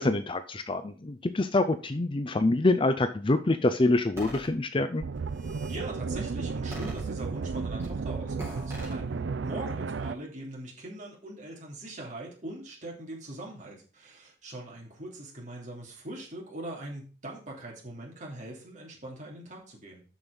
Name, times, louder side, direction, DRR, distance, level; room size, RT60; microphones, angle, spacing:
voice 1, 0.0-5.0, left 2 dB, 30° left, 10 dB, 0.5 m, -26 dB
sound 1, 4.2-4.5 5.2-5.8 6.7-7.4 7.8-8.0 8.4-8.9, equal, 15° right, 4.0 m, -42 dB
sound 2, 5.0-10.2, right 4 dB, 75° right, 0.5 m, -33 dB
voice 2, 5.7-20.0, right 1 dB, 45° right, -2 dB, 3.0 m, -41 dB
7.1 x 6.3 x 5.3 m, 0.37 s
head